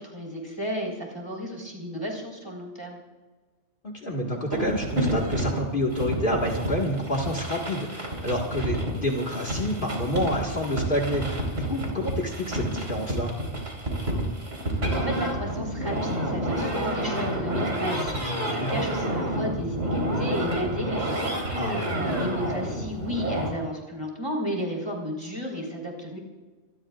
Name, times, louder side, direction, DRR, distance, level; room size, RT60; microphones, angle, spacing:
voice 1, 0.0-3.0 14.6-26.2, equal, 20° right, -2 dB, 4.0 m, -33 dB
voice 2, 3.8-13.4 18.6-18.9 21.5-21.7, equal, 45° left, 0 dB, 2.0 m, -28 dB
sound 1, 4.5-23.5, right 1 dB, 85° right, 4.2 m, -29 dB
25.5 x 19.5 x 2.5 m, 1.3 s
omnidirectional pair, 1.3 m